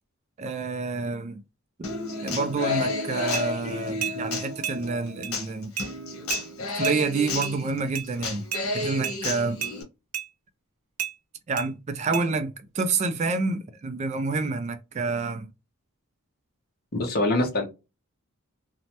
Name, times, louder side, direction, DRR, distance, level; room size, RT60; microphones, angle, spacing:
voice 1, 0.4-1.4 2.2-5.7 6.8-8.4 8.7-9.6 11.5-15.5, right 4 dB, 35° right, 0.3 m, -28 dB
Human voice / Acoustic guitar, 1.8-9.8, left 3 dB, 80° left, 1.0 m, -32 dB
sound 1, 3.3-3.5 4.0-4.2 4.6-4.8 5.2-5.3 5.8-5.9 6.3-6.4 6.8-7.0 7.4-7.5 7.9-8.1 8.5-8.6 9.0-9.2 9.6-9.7 10.1-10.3 11.0-11.1 11.6-11.7 12.1-12.3, right 9 dB, 80° right, 0.6 m, -31 dB
voice 2, 16.9-17.7, left 1 dB, 45° left, 0.9 m, -24 dB
3.1 x 2.0 x 2.8 m
head